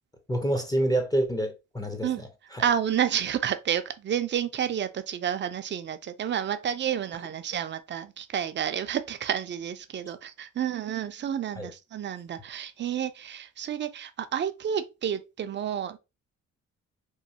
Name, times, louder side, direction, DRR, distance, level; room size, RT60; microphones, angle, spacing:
voice 1, 0.3-2.1 2.5-2.6 11.6-11.7, right 1 dB, 10° left, 0.6 m, -27 dB
voice 2, 2.6-16.0, right 9 dB, 40° right, 0.5 m, -30 dB
3.1 x 2.2 x 2.7 m
cardioid pair, 90°, 30 cm